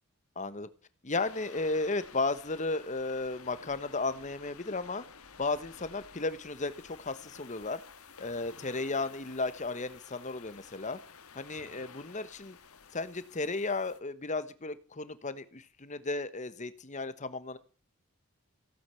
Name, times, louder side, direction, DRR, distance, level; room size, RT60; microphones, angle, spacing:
voice 1, 0.4-0.7 1.0-5.0 5.4-7.8 8.2-11.0 11.3-12.6 12.9-17.6, left 3 dB, 35° left, 14 dB, 1.2 m, -34 dB
sound 1, 1.1-14.0, left 6 dB, 90° left, 1.5 m, -52 dB
16.0 x 8.9 x 8.3 m, 0.39 s
head